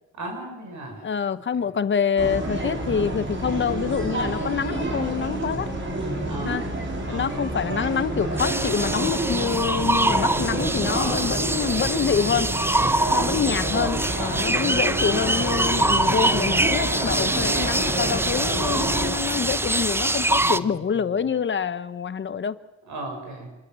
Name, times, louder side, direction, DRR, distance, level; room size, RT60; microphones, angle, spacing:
voice 1, 0.2-1.0 6.2-6.7 7.1-7.4 10.8-11.3 13.0-13.3 14.2-14.5 20.4-20.7 21.0-21.1 22.9-23.5, right 1 dB, 70° right, 2 dB, 6.4 m, -35 dB
voice 2, 1.0-5.7 6.4-6.6 7.1-12.5 13.1-22.6, left 7 dB, 40° left, 14 dB, 0.9 m, -26 dB
sound 1, 2.2-19.1, right 1 dB, 40° right, 4.6 m, -29 dB
sound 2, 8.4-20.6, right 1 dB, 10° right, 0.8 m, -24 dB
27.0 x 13.0 x 7.6 m, 1.1 s
cardioid pair, 90°, 30 cm